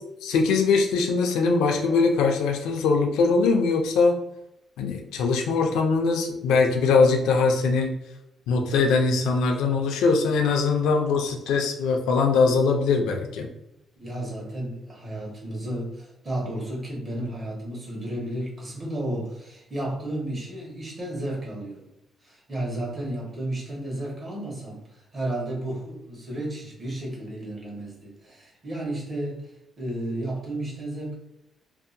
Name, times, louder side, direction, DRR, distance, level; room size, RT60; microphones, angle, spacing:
voice 1, 0.2-4.2 4.8-7.9 8.5-13.5, left 4 dB, 90° left, 2 dB, 0.4 m, -22 dB
voice 2, 14.0-21.9 22.2-29.5 29.8-31.1, right 1 dB, 40° right, -3 dB, 1.1 m, -33 dB
2.6 x 2.0 x 2.6 m, 0.87 s
cardioid pair, 90°, 0 cm